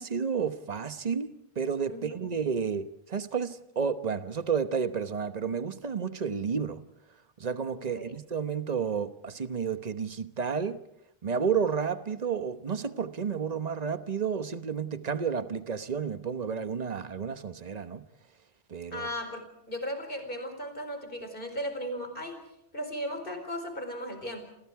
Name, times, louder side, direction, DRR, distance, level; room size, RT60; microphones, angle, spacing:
voice 1, 0.0-6.8 7.4-10.8 11.2-18.1 18.7-19.1, right 6 dB, 40° right, 1.2 m, -31 dB
voice 2, 7.8-8.1 18.9-22.5 22.7-24.4, equal, 60° left, 4.7 m, -36 dB
29.0 x 27.5 x 4.8 m
omnidirectional pair, 1.0 m